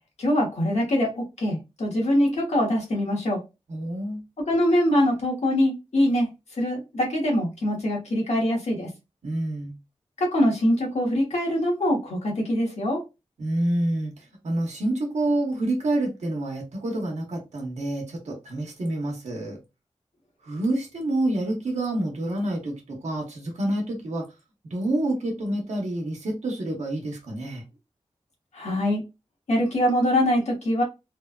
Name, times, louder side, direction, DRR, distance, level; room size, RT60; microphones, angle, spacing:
voice 1, 0.2-3.4 4.5-6.3 6.6-8.9 10.2-13.0 28.5-29.0 29.5-30.8, left 1 dB, 75° left, 0 dB, 1.1 m, -23 dB
voice 2, 3.7-4.2 9.2-9.7 13.4-19.6 20.4-24.3 24.6-27.6, right 1 dB, 85° right, 0 dB, 0.9 m, -28 dB
3.1 x 2.2 x 2.3 m, 0.25 s
wide cardioid pair, 80°, 11 cm